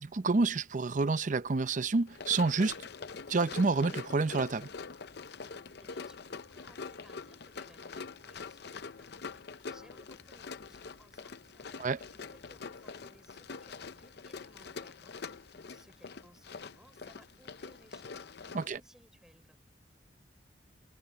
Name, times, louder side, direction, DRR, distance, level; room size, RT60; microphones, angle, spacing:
voice 1, 0.0-2.8 3.3-4.7 11.8-12.0 18.5-18.8, right 3 dB, 45° right, 0.6 m, -29 dB
Run, 2.1-18.8, left 4 dB, 60° left, 0.7 m, -45 dB
voice 2, 5.8-19.6, equal, 5° right, 4.5 m, -62 dB
head